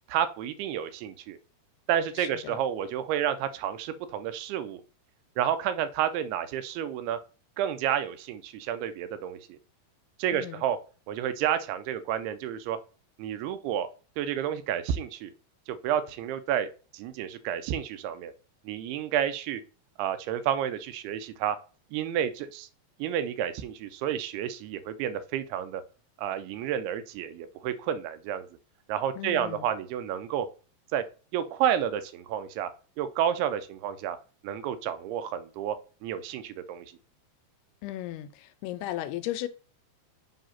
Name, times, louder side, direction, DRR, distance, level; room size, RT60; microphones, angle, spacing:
voice 1, 0.1-1.4 1.9-4.8 5.4-7.2 7.6-9.6 10.2-10.8 11.1-12.8 13.2-13.9 14.2-15.3 15.7-16.7 16.9-18.3 18.7-19.6 20.0-21.6 21.9-22.7 23.0-25.8 26.2-28.5 28.9-30.5 30.9-31.0 31.3-32.7 33.0-34.2 34.4-35.8 36.0-36.9, right 10 dB, 90° right, 2.6 m, -30 dB
voice 2, 2.2-2.6 10.3-10.6 29.2-29.7 37.8-39.5, left 14 dB, 85° left, 2.6 m, -36 dB
7.7 x 2.8 x 5.7 m
omnidirectional pair, 4.5 m